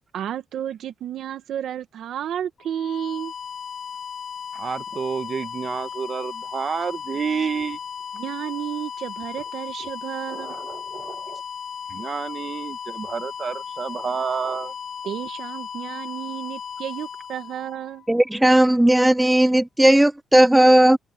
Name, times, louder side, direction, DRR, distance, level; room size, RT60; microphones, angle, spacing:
voice 1, 0.1-3.3 8.1-10.6 15.0-18.1, right 10 dB, 70° right, 1.7 m, -32 dB
sound 1, 2.6-18.4, left 7 dB, 50° left, 0.9 m, -36 dB
voice 2, 4.5-7.8 10.3-11.4 11.9-14.7, right 6 dB, 45° right, 1.5 m, -29 dB
voice 3, 18.1-21.0, right 1 dB, 10° right, 0.3 m, -16 dB
cardioid pair, 90°, 0 cm